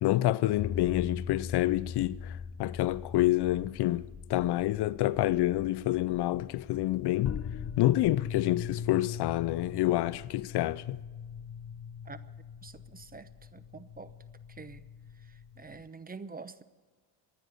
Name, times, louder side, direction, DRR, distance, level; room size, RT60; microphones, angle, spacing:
voice 1, 0.0-7.3 7.8-11.0, left 16 dB, 60° left, 0.6 m, -28 dB
sound 1, 0.6-15.8, left 7 dB, 30° left, 0.9 m, -41 dB
voice 2, 12.6-14.1 14.5-14.8 15.3-16.6, right 4 dB, 20° right, 0.7 m, -46 dB
24.5 x 9.7 x 5.6 m
cardioid pair, 95°, 46 cm